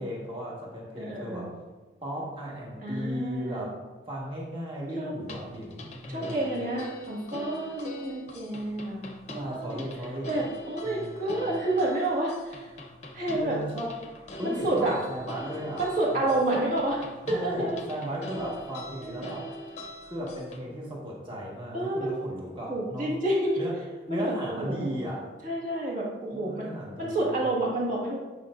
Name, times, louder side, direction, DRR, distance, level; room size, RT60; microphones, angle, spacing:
voice 1, 0.0-1.5 2.0-3.8 4.1-6.6 9.3-10.3 10.8-11.6 13.3-14.0 14.4-15.8 16.1-16.6 17.2-19.5 20.0-23.1 23.6-23.7 24.1-25.2 26.3-27.4, equal, 25° right, -4 dB, 1.5 m, -36 dB
voice 2, 1.0-1.5 2.8-3.6 5.0-5.1 6.1-9.9 10.3-12.6 13.1-13.6 14.4-15.0 15.8-17.0 17.3-17.8 19.0-19.3 21.7-22.2 22.7-23.6 24.1-24.3 24.6-24.9 25.4-26.7 27.0-28.2, right 1 dB, 45° right, -4 dB, 1.7 m, -29 dB
sound 1, 5.2-20.6, equal, 35° left, 0.7 m, -42 dB
8.6 x 4.8 x 2.5 m, 1.2 s
head